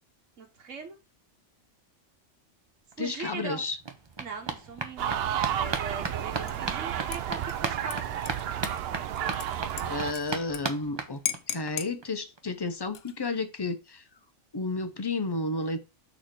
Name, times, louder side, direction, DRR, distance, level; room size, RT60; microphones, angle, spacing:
voice 1, 0.4-1.0 3.0-3.6 4.2-8.0, right 5 dB, 85° right, 1.5 m, -40 dB
sound 1, 2.9-3.0 3.2-11.7 12.0-12.1 12.4-12.5 12.7-12.8, right 4 dB, 30° right, 0.6 m, -37 dB
voice 2, 3.0-3.8 9.8-11.2 11.5-14.0 14.5-15.8, left 3 dB, 25° left, 0.6 m, -32 dB
sound 2, 5.0-10.1, right 10 dB, 65° right, 0.7 m, -32 dB
Dishes pots and pans / Liquid, 6.5-6.8 7.1-10.6 10.9-11.0 11.3-11.9 12.8-13.3, left 9 dB, 60° left, 0.8 m, -38 dB
6.5 x 3.3 x 5.9 m
omnidirectional pair, 1.3 m